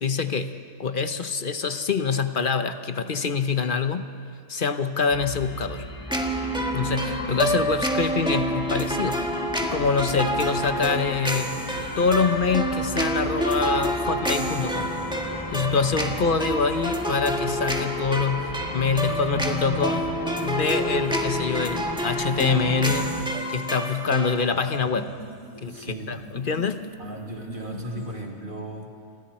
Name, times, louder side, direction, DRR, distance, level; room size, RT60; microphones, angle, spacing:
voice 1, 0.0-0.5 0.8-4.1 4.5-5.9 6.7-9.2 9.7-11.5 12.0-14.9 15.5-20.0 20.4-23.2 23.5-25.1 25.6-26.8, left 5 dB, 45° left, 9 dB, 1.0 m, -25 dB
sound 1, 5.1-23.2, left 2 dB, 20° left, 1.2 m, -36 dB
sound 2, 6.1-24.4, right 1 dB, 5° right, 1.5 m, -28 dB
voice 2, 18.9-20.0 25.7-26.2 27.0-28.9, right 1 dB, 45° right, 1 dB, 2.5 m, -37 dB
sound 3, 22.9-28.2, equal, 90° right, 3.5 m, -42 dB
29.5 x 23.5 x 4.3 m, 2.2 s
omnidirectional pair, 1.2 m